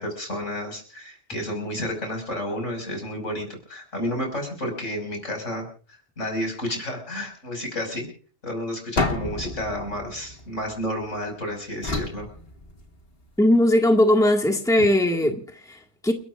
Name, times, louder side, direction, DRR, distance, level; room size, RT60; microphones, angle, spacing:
voice 1, 0.0-5.7 6.2-8.1 8.4-12.3 14.8-14.9, equal, 85° left, 6.2 m, -31 dB
sound 1, 9.0-11.2 11.8-13.2, left 2 dB, 55° left, 2.3 m, -30 dB
voice 2, 13.4-16.1, left 1 dB, 5° left, 1.8 m, -19 dB
30.0 x 13.0 x 2.5 m
omnidirectional pair, 1.2 m